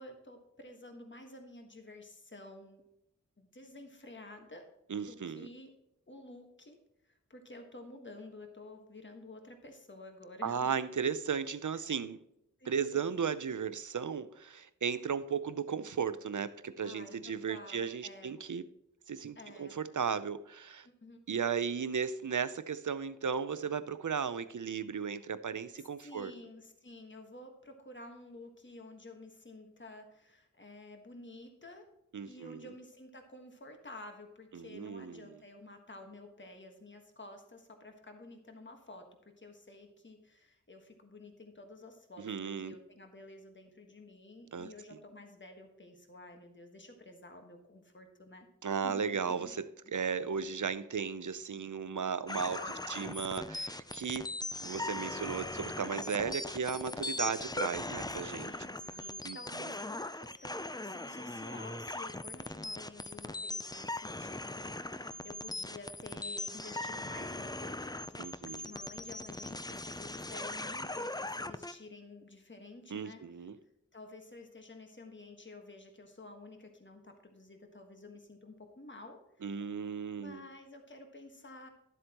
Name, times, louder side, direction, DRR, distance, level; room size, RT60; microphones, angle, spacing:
voice 1, 0.0-2.8 3.4-4.6 5.0-5.7 6.1-10.7 11.7-11.8 12.6-13.1 16.8-18.4 19.3-19.8 20.8-21.2 25.8-31.9 32.2-48.5 48.8-49.5 52.3-53.1 58.3-68.2 68.5-73.5 73.9-79.4 80.2-81.7, left 2 dB, 40° left, 4 dB, 1.5 m, -51 dB
voice 2, 4.9-5.5 10.4-12.2 12.7-18.6 19.1-20.9 21.3-26.3 32.1-32.7 34.5-35.3 42.2-42.7 44.5-44.7 48.6-52.6 52.9-54.3 54.6-58.5 59.2-59.4 68.2-68.7 72.9-73.6 79.4-80.5, right 6 dB, 80° right, 14 dB, 0.6 m, -35 dB
sound 1, 52.3-71.7, left 2 dB, 15° left, 0.5 m, -40 dB
12.0 x 7.8 x 3.0 m, 0.84 s
wide cardioid pair, 55°, 30 cm